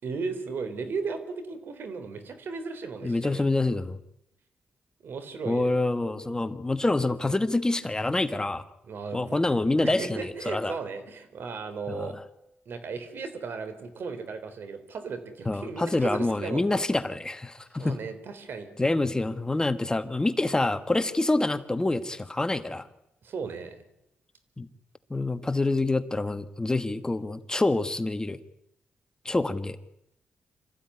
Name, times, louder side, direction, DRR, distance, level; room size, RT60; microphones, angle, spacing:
voice 1, 0.0-3.4 5.0-5.7 6.2-6.4 8.8-9.4 9.8-12.1 12.7-16.8 17.7-18.7 23.2-23.8, right 4 dB, 70° right, 10 dB, 3.7 m, -36 dB
voice 2, 3.0-4.0 5.5-8.6 9.1-10.7 11.9-12.1 15.5-17.9 18.8-22.9 24.6-24.7 25.1-28.4 29.2-29.8, left 2 dB, 20° left, 11 dB, 1.4 m, -26 dB
26.0 x 15.0 x 9.7 m, 0.84 s
cardioid pair, 75°, 4 cm